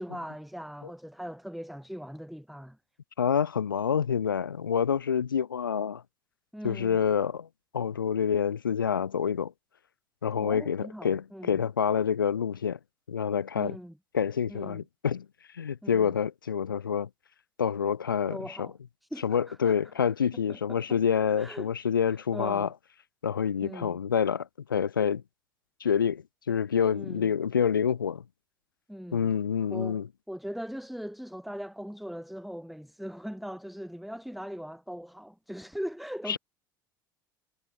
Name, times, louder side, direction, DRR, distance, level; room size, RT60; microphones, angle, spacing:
voice 1, 0.0-2.8 6.5-7.0 10.4-11.6 13.5-14.0 14.5-14.8 15.8-16.1 18.3-18.7 19.0-19.8 20.3-21.0 21.4-21.7 22.1-22.7 23.6-24.0 26.9-27.3 28.9-29.3 29.7-30.0 30.3-36.4, equal, ahead, 2.9 m, -40 dB
voice 2, 3.2-6.0 6.6-7.5 7.7-9.5 10.2-12.8 13.1-13.8 14.1-15.2 15.5-17.1 17.6-18.7 19.2-22.7 23.2-25.2 25.8-28.2 29.1-30.1 36.3-36.4, left 7 dB, 85° left, 1.2 m, -27 dB
figure-of-eight pair, 65°, 11 cm